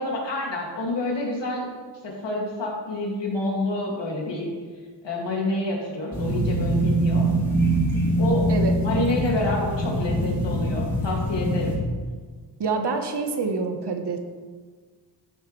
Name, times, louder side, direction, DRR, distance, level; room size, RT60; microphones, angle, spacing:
voice 1, 0.0-1.7 2.0-4.5 5.0-7.3 8.2-8.5 8.8-11.7, left 2 dB, 75° left, -2 dB, 2.3 m, -28 dB
sound 1, 6.1-11.8, right 1 dB, 5° left, 2.8 m, -23 dB
voice 2, 12.6-14.2, right 4 dB, 65° right, 5 dB, 1.2 m, -26 dB
12.0 x 6.5 x 3.2 m, 1.5 s
cardioid pair, 80°, 43 cm